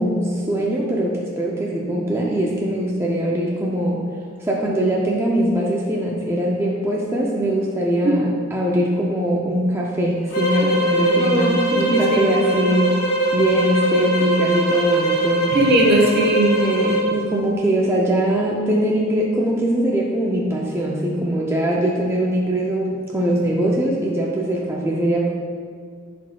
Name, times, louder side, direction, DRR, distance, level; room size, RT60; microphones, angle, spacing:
voice 1, 0.0-4.1 4.4-13.0 13.3-15.5 16.6-25.3, right 1 dB, 15° right, -3 dB, 0.4 m, -21 dB
sound 1, 10.3-17.1, right 1 dB, 85° left, 1.2 m, -21 dB
voice 2, 11.2-12.3 15.5-16.6, right 1 dB, 55° right, -1 dB, 1.1 m, -19 dB
10.5 x 4.3 x 2.2 m, 2.1 s
head